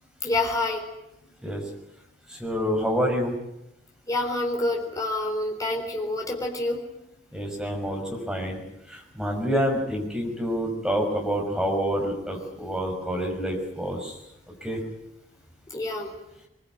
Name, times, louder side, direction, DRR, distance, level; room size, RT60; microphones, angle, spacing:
voice 1, 0.2-0.8 4.1-6.8 15.7-16.1, left 2 dB, 20° left, 1 dB, 4.0 m, -27 dB
voice 2, 2.3-3.3 7.3-8.6 8.9-14.2 14.6-14.8, equal, 5° right, 1 dB, 5.8 m, -27 dB
22.5 x 22.0 x 9.6 m, 0.84 s
head